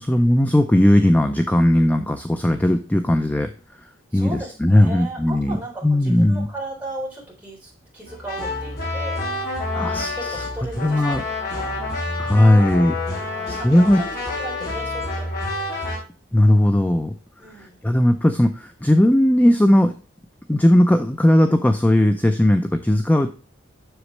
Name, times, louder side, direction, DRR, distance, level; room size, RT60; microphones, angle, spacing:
voice 1, 0.0-3.5 4.1-5.6 5.8-6.5 9.8-10.1 10.8-11.2 12.2-13.0 13.3-14.0 16.3-17.1 17.6-19.9 20.5-23.3, left 1 dB, 10° left, 7 dB, 0.4 m, -17 dB
voice 2, 4.1-11.2 11.6-12.4 13.2-15.8 17.4-17.8, right 2 dB, 10° right, -5 dB, 3.6 m, -37 dB
sound 1, 8.1-16.0, left 2 dB, 50° left, 4.0 m, -28 dB
8.0 x 6.2 x 3.2 m, 0.36 s
head